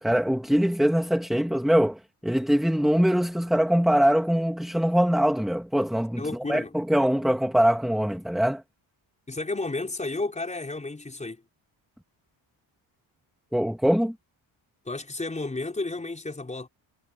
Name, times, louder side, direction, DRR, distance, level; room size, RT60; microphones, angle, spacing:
voice 1, 0.0-8.6 13.5-14.1, equal, ahead, 1.9 m, -23 dB
voice 2, 6.2-6.7 9.3-11.4 14.9-16.7, left 2 dB, 15° left, 4.8 m, -32 dB
cardioid pair, 145°, 48 cm